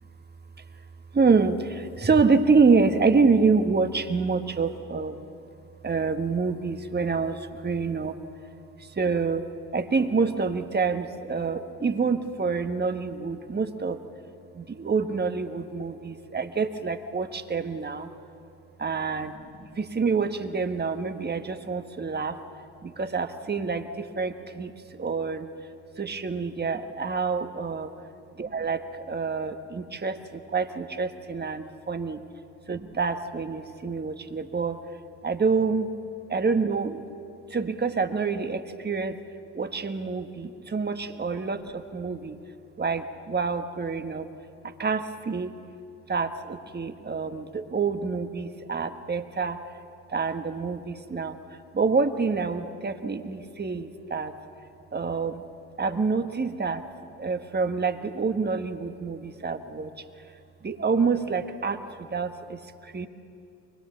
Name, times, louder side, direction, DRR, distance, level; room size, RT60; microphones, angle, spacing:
voice 1, 1.1-5.3 5.8-8.2 8.8-9.5 9.7-14.0 14.5-18.1 18.8-22.4 22.8-25.5 26.0-27.9 28.5-32.2 32.7-34.8 35.2-35.9 36.3-37.0 37.5-39.2 39.5-42.4 42.8-44.3 44.8-45.5 46.1-49.6 50.1-51.4 51.7-54.3 54.9-55.4 55.8-56.8 57.2-59.9 60.6-63.1, right 4 dB, 25° right, 7 dB, 1.6 m, -27 dB
23.5 x 20.5 x 7.1 m, 2.6 s
hypercardioid pair, 55°, 36 cm